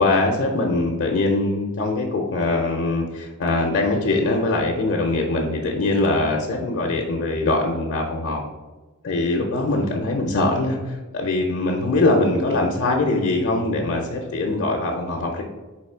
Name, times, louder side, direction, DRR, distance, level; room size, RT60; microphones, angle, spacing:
voice 1, 0.0-8.4 9.0-15.4, left 2 dB, 55° left, -1 dB, 0.5 m, -22 dB
4.0 x 3.0 x 4.3 m, 1.2 s
head